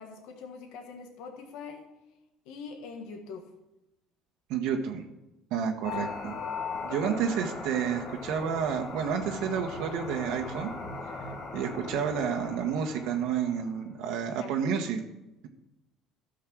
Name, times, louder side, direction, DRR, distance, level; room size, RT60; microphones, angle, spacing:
voice 1, 0.0-1.9 2.5-3.5 6.9-7.4 14.3-14.8, left 5 dB, 80° left, 3 dB, 1.7 m, -43 dB
voice 2, 4.5-5.0 5.5-6.4 6.8-10.7 11.5-15.0, right 7 dB, 75° right, 2 dB, 1.3 m, -30 dB
sound 1, 5.8-13.8, left 3 dB, 55° left, 2.1 m, -39 dB
12.5 x 6.4 x 6.2 m, 0.93 s
supercardioid pair, 100°, 0 cm